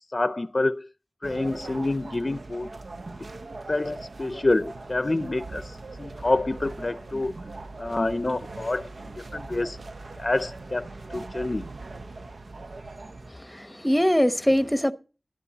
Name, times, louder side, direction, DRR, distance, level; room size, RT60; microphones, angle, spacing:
voice 1, 0.1-0.9 1.2-2.7 3.7-7.3 7.8-8.9 9.2-9.8 10.2-11.7, left 2 dB, 50° left, 0.5 m, -27 dB
sound 1, 1.2-13.3, right 3 dB, 80° right, 0.7 m, -40 dB
voice 2, 13.3-14.9, equal, 5° left, 1.0 m, -23 dB
12.5 x 11.0 x 4.1 m
wide cardioid pair, 50°, 0 cm